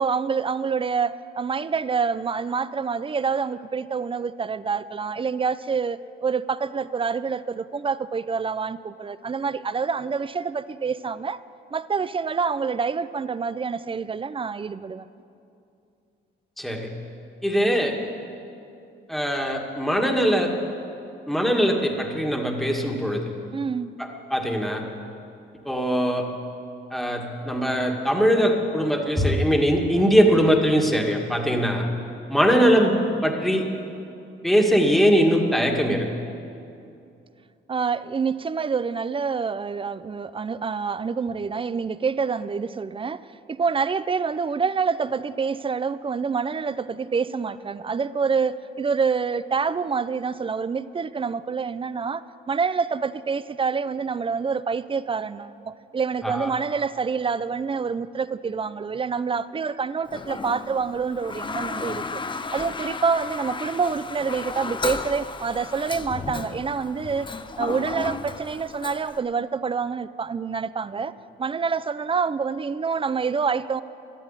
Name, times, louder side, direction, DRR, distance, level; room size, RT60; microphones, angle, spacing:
voice 1, 0.0-11.4 11.7-15.1 23.5-24.0 37.7-62.2 62.5-67.3 67.6-71.1 71.4-73.8, right 5 dB, 25° right, 16 dB, 0.5 m, -27 dB
voice 2, 16.6-16.9 17.4-17.9 19.1-20.5 21.3-23.2 24.3-24.8 25.7-26.3 26.9-31.9 32.3-33.0 33.2-33.6 34.4-36.1 56.2-56.5, equal, ahead, 1 dB, 1.8 m, -21 dB
Toilet flush, 60.1-69.2, left 4 dB, 25° left, 0.7 m, -34 dB
13.0 x 11.0 x 8.9 m, 2.6 s
cardioid pair, 90°, 20 cm